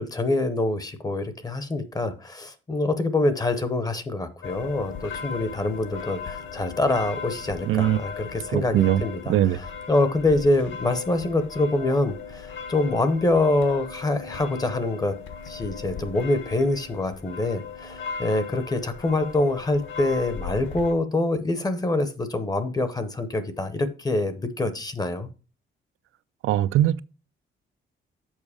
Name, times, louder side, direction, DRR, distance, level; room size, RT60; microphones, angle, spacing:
voice 1, 0.0-15.1 15.5-25.3, left 2 dB, 20° left, 0.7 m, -25 dB
sound 1, 4.4-20.9, left 6 dB, 65° left, 1.3 m, -38 dB
voice 2, 7.7-8.0 8.5-9.0 9.3-9.6 26.4-27.0, right 12 dB, 80° right, 0.4 m, -21 dB
7.3 x 5.2 x 4.9 m
wide cardioid pair, 175°, 21 cm